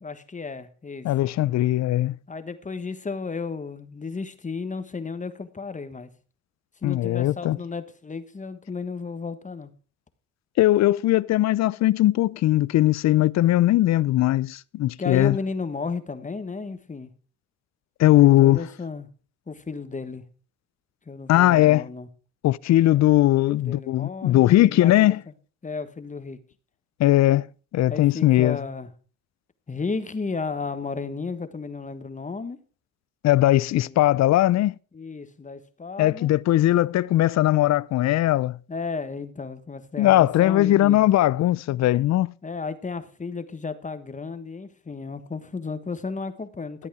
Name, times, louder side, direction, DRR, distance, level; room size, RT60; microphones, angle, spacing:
voice 1, 0.0-1.1 2.3-6.1 6.8-9.7 15.0-17.1 18.2-19.1 19.5-20.2 21.1-22.1 23.5-25.1 25.6-26.4 27.9-28.9 29.7-32.6 33.5-34.0 34.9-36.3 38.7-41.0 42.4-46.9, left 4 dB, 25° left, 1.3 m, -33 dB
voice 2, 1.0-2.2 6.8-7.6 10.6-15.4 18.0-18.6 21.3-21.8 22.4-25.2 27.0-27.5 27.7-28.6 33.2-34.7 36.0-38.6 40.0-42.3, left 15 dB, 65° left, 0.5 m, -19 dB
13.5 x 8.4 x 4.8 m
cardioid pair, 90°, 30 cm